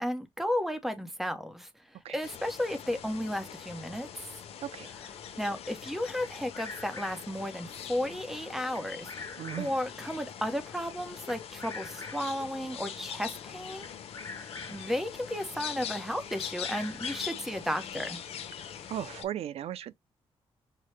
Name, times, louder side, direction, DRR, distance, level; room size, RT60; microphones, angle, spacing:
voice 1, 0.0-1.7 2.1-4.1 5.4-9.1 9.6-13.9 14.7-18.2, equal, 5° right, 0.8 m, -33 dB
sound 1, 2.2-19.2, left 8 dB, 85° left, 0.7 m, -43 dB
Bird vocalization bird call bird song, 6.2-7.4 8.7-9.9 11.3-12.4 13.8-14.9 16.3-17.5, left 3 dB, 35° left, 0.8 m, -45 dB
voice 2, 9.4-9.7 18.6-19.9, right 11 dB, 85° right, 0.4 m, -37 dB
5.7 x 2.1 x 3.1 m
wide cardioid pair, 145°, 10 cm